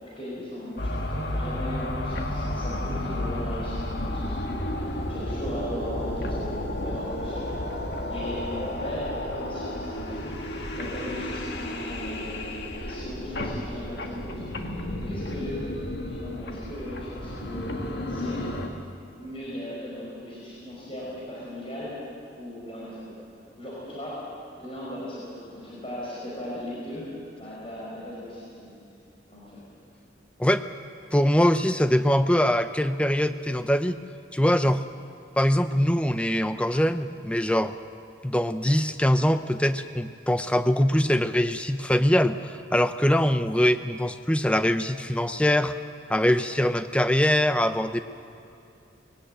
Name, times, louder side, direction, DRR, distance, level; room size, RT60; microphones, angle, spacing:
voice 1, 0.0-7.5 8.1-10.3 10.8-12.5 12.8-14.3 15.0-15.6 16.2-17.8 18.1-18.5 19.2-21.9 22.3-23.2 23.6-24.2 24.6-27.1 27.4-28.7 29.3-29.6, left 1 dB, 30° left, -7 dB, 5.2 m, -37 dB
sound 1, 0.8-18.7, left 1 dB, 60° left, 1.8 m, -32 dB
voice 2, 30.4-30.7 31.1-34.0 34.3-34.8 35.4-37.7 38.2-45.7 46.1-48.0, equal, 5° left, 10 dB, 0.6 m, -23 dB
20.5 x 17.0 x 9.0 m, 2.5 s
head